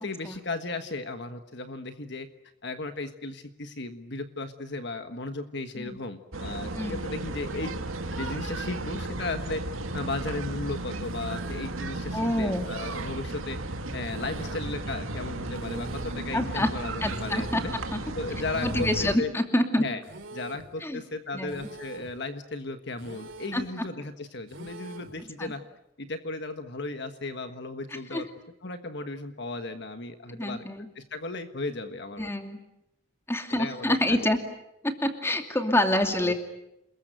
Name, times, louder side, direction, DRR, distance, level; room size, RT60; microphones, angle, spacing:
voice 1, 0.0-2.3 2.6-7.7 8.2-9.6 9.9-13.6 13.9-17.7 18.1-19.3 19.8-20.0 20.3-25.6 26.0-28.3 28.6-30.6 30.9-32.3 33.5-34.3 36.1-36.3, left 3 dB, 55° left, 8 dB, 1.4 m, -35 dB
sound 1, 6.3-19.2, right 2 dB, 90° right, 2.3 m, -34 dB
sound 2, 11.0-11.7 12.5-13.3 14.0-14.8 15.5-16.2 17.0-17.7 18.5-19.2 20.0-20.7 21.5-22.2 23.0-23.7 24.5-25.2, right 2 dB, 65° right, 3.3 m, -45 dB
voice 2, 12.1-12.7 16.3-16.7 17.0-17.6 17.9-18.0 18.6-19.9 20.8-21.0 21.3-21.7 23.5-23.7 25.4-25.5 28.1-28.3 30.3-30.9 32.2-32.6 33.3-34.4 34.8-36.3, left 1 dB, 10° left, 5 dB, 2.6 m, -27 dB
28.5 x 21.5 x 9.1 m, 0.86 s
head